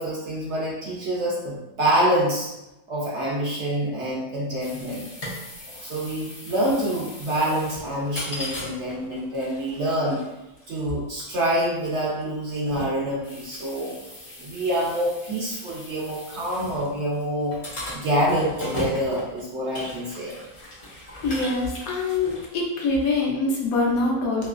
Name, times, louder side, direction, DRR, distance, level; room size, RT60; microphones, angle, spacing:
voice 1, 0.0-2.5 2.9-5.1 5.8-10.2 10.7-13.9 14.4-17.5 17.9-20.4, right 1 dB, 60° right, -5 dB, 0.8 m, -26 dB
sound 1, 4.6-23.2, left 1 dB, 55° left, 0.4 m, -38 dB
voice 2, 21.2-24.5, left 3 dB, 70° left, -1 dB, 1.0 m, -24 dB
3.0 x 2.7 x 2.4 m, 0.97 s
omnidirectional pair, 1.6 m